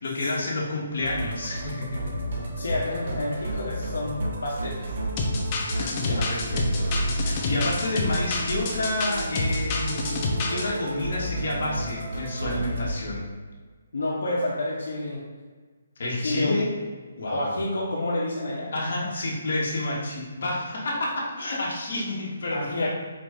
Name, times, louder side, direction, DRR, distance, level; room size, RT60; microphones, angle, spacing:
voice 1, 0.0-2.1 5.7-10.2 10.5-13.2 16.0-16.7 17.2-17.6 18.7-22.9, left 2 dB, 65° left, -4 dB, 1.2 m, -29 dB
Musical instrument, 1.0-12.9, right 1 dB, 50° right, 0.8 m, -32 dB
voice 2, 2.6-4.9 13.9-15.3 16.2-16.6 17.3-18.7 22.5-22.9, left 1 dB, 85° left, -6 dB, 0.8 m, -29 dB
sound 1, 5.2-10.6, left 3 dB, 30° left, 0.5 m, -28 dB
4.5 x 2.5 x 3.4 m, 1.4 s
hypercardioid pair, 160°, 0 cm